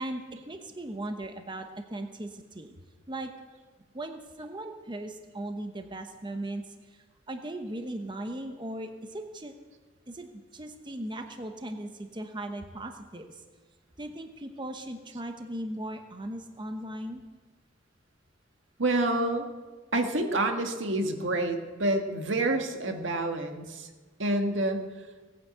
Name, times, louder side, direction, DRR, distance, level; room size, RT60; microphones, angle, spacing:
voice 1, 0.0-2.7 3.1-3.3 3.9-9.5 10.1-13.4 14.0-17.2, right 1 dB, 25° right, 6 dB, 1.0 m, -38 dB
voice 2, 18.8-19.5 19.9-23.9 24.2-24.9, right 2 dB, 80° right, 4 dB, 1.8 m, -28 dB
18.0 x 9.4 x 8.0 m, 1.4 s
head